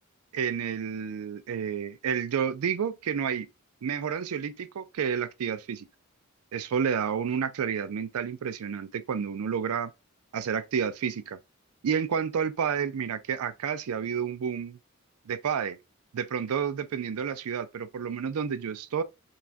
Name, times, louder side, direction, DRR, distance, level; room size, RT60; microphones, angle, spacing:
voice 1, 0.3-3.5 3.8-5.9 6.5-9.9 10.3-11.4 11.8-14.8 15.3-15.8 16.1-19.0, right 7 dB, 90° right, 0.4 m, -30 dB
2.5 x 2.4 x 3.3 m
head